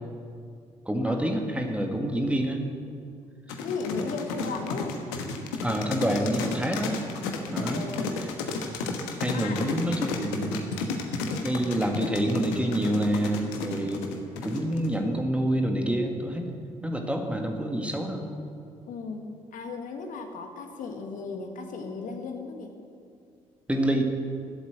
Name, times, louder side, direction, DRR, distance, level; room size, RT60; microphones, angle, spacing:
voice 1, 0.9-2.6 5.6-7.0 7.5-7.9 8.7-8.8 9.2-10.7 11.4-14.0 14.4-16.5 16.8-18.3 23.7-24.0, right 1 dB, 5° right, 3 dB, 1.9 m, -27 dB
sound 1, 3.5-15.0, left 4 dB, 70° left, 1.3 m, -32 dB
voice 2, 3.6-5.0 7.6-8.5 9.3-9.8 11.3-11.6 18.9-19.3 19.5-22.7, left 4 dB, 50° left, 5 dB, 1.6 m, -36 dB
15.0 x 8.1 x 7.6 m, 2.3 s
figure-of-eight pair, 45°, 17 cm